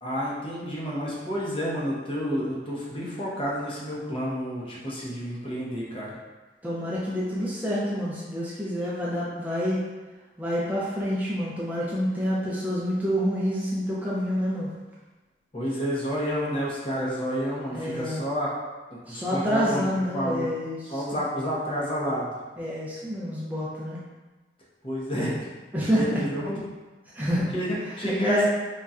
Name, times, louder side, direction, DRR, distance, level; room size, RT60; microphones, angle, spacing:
voice 1, 0.0-6.2 15.5-18.5 18.9-20.5 20.9-22.4 24.8-25.5 25.9-26.6 27.5-28.5, equal, 30° left, -5 dB, 0.7 m, -30 dB
voice 2, 6.6-9.8 10.4-14.7 17.7-18.2 19.1-21.0 22.6-24.0 25.7-26.2 27.1-27.5 27.8-28.5, equal, 10° right, -8 dB, 0.5 m, -27 dB
4.0 x 2.2 x 2.4 m, 1.2 s
head